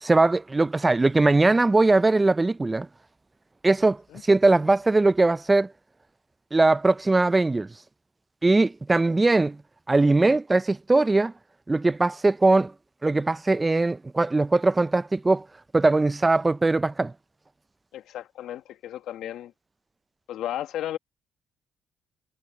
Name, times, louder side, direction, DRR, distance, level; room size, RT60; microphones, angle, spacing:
voice 1, 0.0-2.9 3.6-5.7 6.5-7.7 8.4-9.6 9.9-11.3 11.7-12.7 13.0-15.4 15.7-17.1, right 2 dB, 20° right, 0.4 m, -20 dB
voice 2, 17.9-19.5 20.3-21.0, left 12 dB, 85° left, 1.6 m, -34 dB
cardioid pair, 90°, 0 cm